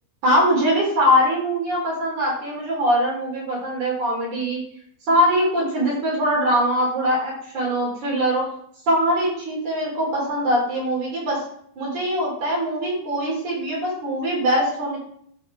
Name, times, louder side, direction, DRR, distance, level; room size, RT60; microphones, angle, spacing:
voice 1, 0.2-4.6 5.1-8.4 8.9-11.4 11.8-15.0, equal, 50° right, -4 dB, 5.4 m, -22 dB
13.5 x 5.1 x 4.9 m, 0.65 s
omnidirectional pair, 4.6 m